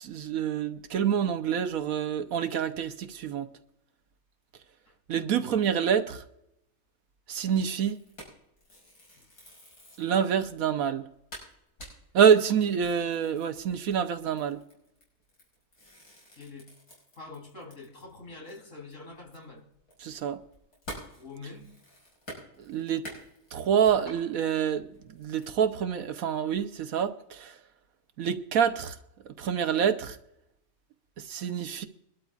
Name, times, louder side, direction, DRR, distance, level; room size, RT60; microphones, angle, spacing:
voice 1, 0.0-3.5 5.1-6.2 7.3-8.0 10.0-11.1 12.1-14.6 20.0-20.4 22.6-23.1 23.5-24.9 25.2-27.5 28.2-29.0 29.4-30.2 31.2-31.9, right 8 dB, 70° right, 1.1 m, -26 dB
sound 1, 7.6-10.1 10.6-10.7 11.0-11.1 11.3-18.2 18.5-18.6 18.9-24.2 24.7-25.5, equal, 90° left, 6.2 m, -48 dB
voice 2, 16.4-16.7 17.2-19.6 21.2-21.7, left 3 dB, 60° left, 3.9 m, -45 dB
23.5 x 12.5 x 2.4 m
omnidirectional pair, 1.6 m